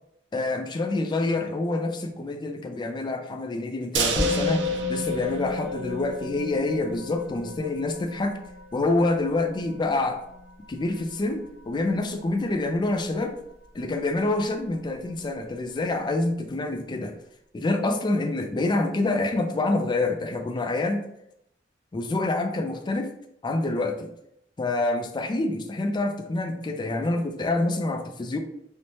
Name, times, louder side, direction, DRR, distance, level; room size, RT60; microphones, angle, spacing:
voice 1, 0.3-8.4 8.7-10.2 10.7-13.4 13.7-17.1 17.5-21.0 21.9-23.1 23.4-24.1 24.6-28.4, left 2 dB, 25° left, 5 dB, 0.3 m, -27 dB
sound 1, 3.9-6.1 6.4-6.5 6.9-7.0, right 5 dB, 75° right, 0.4 m, -31 dB
Musical instrument, 4.2-13.7, left 3 dB, 40° right, 0.9 m, -34 dB
3.0 x 2.1 x 2.7 m, 0.77 s
head